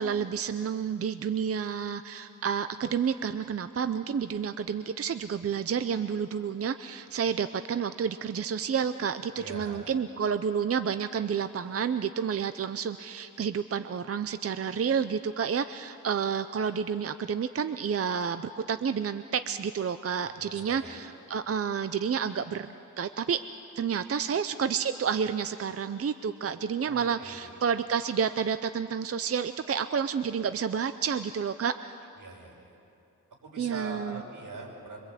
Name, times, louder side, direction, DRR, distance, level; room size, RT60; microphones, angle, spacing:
voice 1, 0.0-23.4 23.8-32.0 33.6-34.2, right 7 dB, 45° right, 11 dB, 0.6 m, -30 dB
voice 2, 9.4-9.9 20.4-21.0 26.8-27.5 32.2-32.8 33.4-35.1, right 3 dB, 85° right, -1 dB, 5.6 m, -42 dB
26.0 x 24.0 x 8.3 m, 2.7 s
wide cardioid pair, 145°, 32 cm